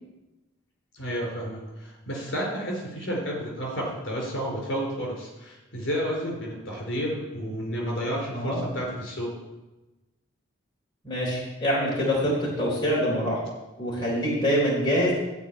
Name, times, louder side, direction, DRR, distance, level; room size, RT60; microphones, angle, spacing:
voice 1, 0.9-9.3, equal, 65° left, -2 dB, 4.5 m, -31 dB
voice 2, 11.0-13.4 13.8-15.1, equal, 20° left, -6 dB, 3.7 m, -25 dB
14.5 x 4.9 x 8.9 m, 1.1 s
head